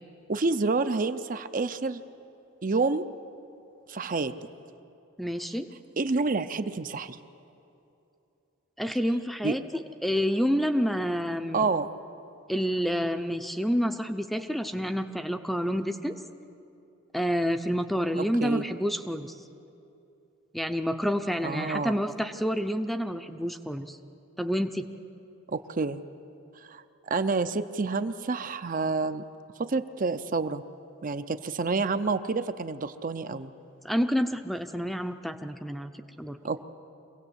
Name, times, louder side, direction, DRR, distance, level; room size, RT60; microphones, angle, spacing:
voice 1, 0.3-2.0 2.6-3.1 3.9-4.3 6.0-7.2 9.4-9.6 11.5-11.9 18.2-18.6 21.4-21.9 25.5-26.0 26.6-29.2 29.6-30.6 31.0-33.5 36.4-36.6, right 3 dB, 40° right, 11 dB, 0.6 m, -28 dB
voice 2, 5.2-5.7 8.8-11.7 12.5-16.2 17.1-19.3 20.5-24.0 24.4-24.9 33.8-36.4, equal, ahead, 8 dB, 0.6 m, -28 dB
24.5 x 17.5 x 8.1 m, 2.8 s
head